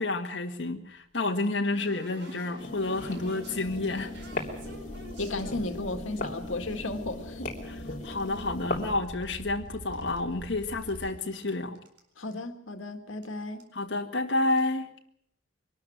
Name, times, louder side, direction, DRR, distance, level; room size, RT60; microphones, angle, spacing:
voice 1, 0.0-4.1 8.0-11.8 13.7-14.9, left 2 dB, 65° left, 1.7 m, -30 dB
sound 1, 0.8-6.2 6.7-8.5 8.7-9.5 9.8-11.1 11.4-11.5 11.7-12.0 12.3-12.4 13.2-13.3 13.6-13.8 14.4-14.7, right 1 dB, 60° right, 4.5 m, -50 dB
sound 2, 2.6-8.9, left 2 dB, 40° left, 3.3 m, -38 dB
sound 3, 3.5-11.2, right 1 dB, 85° right, 1.5 m, -45 dB
voice 2, 5.2-7.5 12.2-13.7, left 2 dB, 85° left, 1.9 m, -34 dB
23.5 x 13.0 x 9.3 m
head